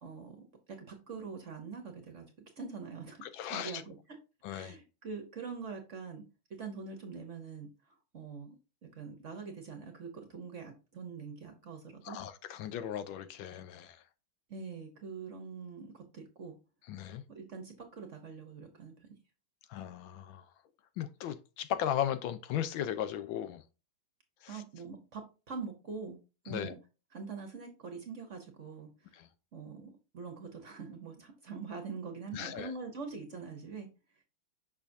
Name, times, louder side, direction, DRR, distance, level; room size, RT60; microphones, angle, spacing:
voice 1, 0.0-2.3 2.6-4.2 4.5-6.2 6.5-8.6 8.9-12.2 14.5-16.5 17.3-19.1 24.4-26.2 26.4-26.8 27.1-29.2 29.5-33.9, right 5 dB, 50° right, 1.0 m, -44 dB
voice 2, 3.2-3.8 4.4-4.8 12.0-14.0 16.9-17.2 19.7-20.5 21.0-23.6 24.4-24.6 26.5-26.7 29.1-29.3 32.3-32.7, left 10 dB, 80° left, 1.3 m, -37 dB
6.5 x 5.7 x 2.6 m
omnidirectional pair, 2.2 m